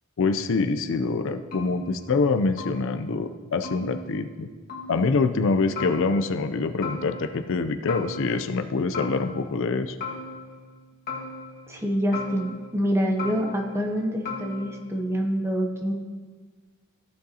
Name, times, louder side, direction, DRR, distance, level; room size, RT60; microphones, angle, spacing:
voice 1, 0.2-4.5 4.9-10.0, left 4 dB, 60° left, 8 dB, 0.4 m, -25 dB
sound 1, 1.5-2.3 2.6-3.2 3.6-4.4 4.7-5.3 5.8-6.5 6.8-7.6 7.9-8.7 8.9-9.7 10.0-10.8 11.1-11.8 12.1-12.9 13.2-13.9 14.3-15.0, left 3 dB, 45° left, 1.5 m, -38 dB
voice 2, 11.7-15.9, equal, 10° right, 2 dB, 0.7 m, -26 dB
14.5 x 6.4 x 2.8 m, 1.4 s
head